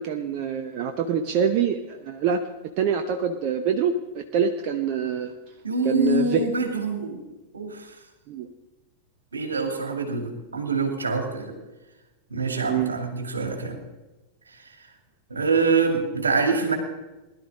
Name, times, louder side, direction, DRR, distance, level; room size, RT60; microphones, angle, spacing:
voice 1, 0.0-2.4 2.8-5.3 5.8-6.5 8.3-8.5 12.7-12.9, right 7 dB, 45° right, 6 dB, 0.8 m, -25 dB
voice 2, 5.6-7.2 7.5-7.9 9.3-11.5 12.3-13.8 15.3-16.8, right 3 dB, 75° right, 5 dB, 2.2 m, -25 dB
20.0 x 11.5 x 3.6 m, 1.1 s
figure-of-eight pair, 90°, 0 cm